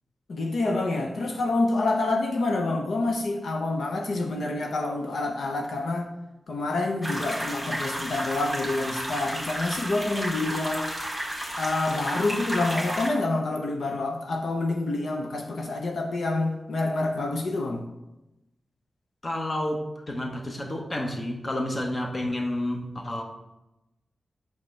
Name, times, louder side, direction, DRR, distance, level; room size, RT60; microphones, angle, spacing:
voice 1, 0.3-6.1 6.5-10.9 11.6-17.9, left 2 dB, 70° left, 0.8 m, -27 dB
sound 1, 7.0-13.1, equal, 5° left, 1.6 m, -32 dB
voice 2, 19.2-23.2, left 1 dB, 25° left, 1.0 m, -30 dB
8.5 x 5.9 x 3.3 m
wide cardioid pair, 160°, 0 cm